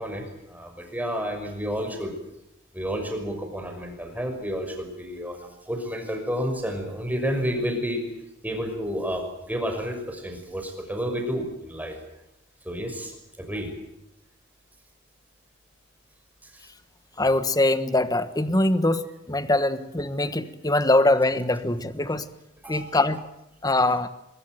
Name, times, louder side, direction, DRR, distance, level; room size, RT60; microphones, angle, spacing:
voice 1, 0.0-2.1 2.7-8.0 8.4-12.0 12.6-13.7 16.4-16.6 22.6-22.9, equal, 10° right, 3 dB, 5.8 m, -30 dB
voice 2, 17.2-22.3 22.7-23.2 23.6-24.1, left 2 dB, 20° left, 12 dB, 1.3 m, -23 dB
22.5 x 22.0 x 9.1 m, 0.83 s
head